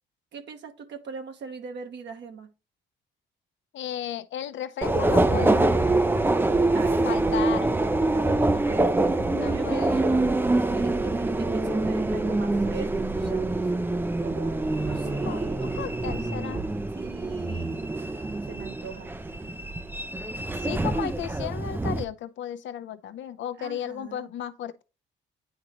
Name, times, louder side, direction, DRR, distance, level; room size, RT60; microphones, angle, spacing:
voice 1, 0.3-2.5 6.7-7.2 8.0-10.3 10.7-13.7 14.2-15.7 16.9-17.9 18.4-19.1 23.6-24.3, right 5 dB, 60° right, 1.1 m, -41 dB
voice 2, 3.7-5.8 7.0-7.8 9.3-10.0 15.1-16.6 20.6-24.8, left 10 dB, 70° left, 0.7 m, -34 dB
Subway metro underground, 4.8-22.0, right 2 dB, 10° right, 0.5 m, -25 dB
9.6 x 3.8 x 3.0 m
cardioid pair, 90°, 20 cm